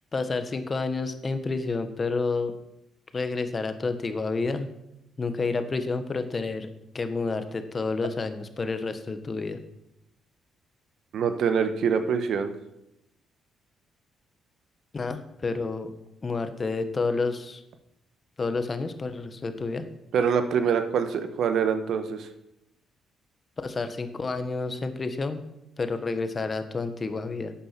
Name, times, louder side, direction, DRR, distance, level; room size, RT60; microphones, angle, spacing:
voice 1, 0.1-2.5 3.1-4.7 5.2-6.7 6.9-9.6 14.9-15.9 16.2-17.6 18.4-19.9 23.6-25.4 25.8-27.5, left 3 dB, 35° left, 9 dB, 1.3 m, -29 dB
voice 2, 11.1-12.5 20.1-22.3, right 6 dB, 70° right, 8 dB, 1.2 m, -25 dB
11.0 x 8.6 x 6.0 m, 0.86 s
cardioid pair, 90°, 0 cm